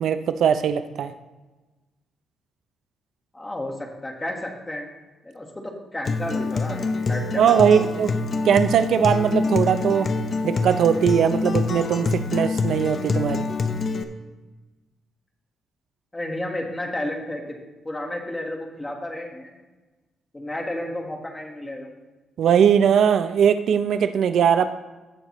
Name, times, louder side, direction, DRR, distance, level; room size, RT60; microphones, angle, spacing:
voice 1, 0.0-1.1 7.4-8.1 8.4-10.1 10.4-13.5 22.4-24.7, right 8 dB, 65° right, 11 dB, 0.4 m, -20 dB
voice 2, 3.3-4.9 5.2-7.8 16.1-17.6 17.8-19.6 20.3-21.9, left 1 dB, 15° left, 2 dB, 1.5 m, -32 dB
Acoustic guitar, 6.0-14.0, left 4 dB, 40° left, 0.7 m, -26 dB
16.5 x 6.5 x 3.1 m, 1.2 s
cardioid pair, 140°, 0 cm